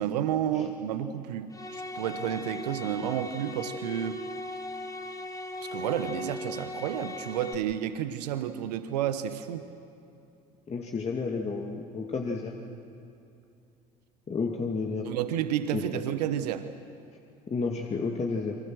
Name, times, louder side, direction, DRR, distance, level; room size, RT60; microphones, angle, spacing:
voice 1, 0.0-4.2 5.6-9.7 15.0-16.7, right 10 dB, 75° right, 11 dB, 1.1 m, -31 dB
sound 1, 1.5-7.6, left 2 dB, 15° left, 2.1 m, -38 dB
voice 2, 10.7-12.5 14.3-15.1 15.7-16.0 17.5-18.6, left 4 dB, 30° left, 1 dB, 2.4 m, -31 dB
29.5 x 24.5 x 6.4 m, 2.6 s
hypercardioid pair, 60°, 21 cm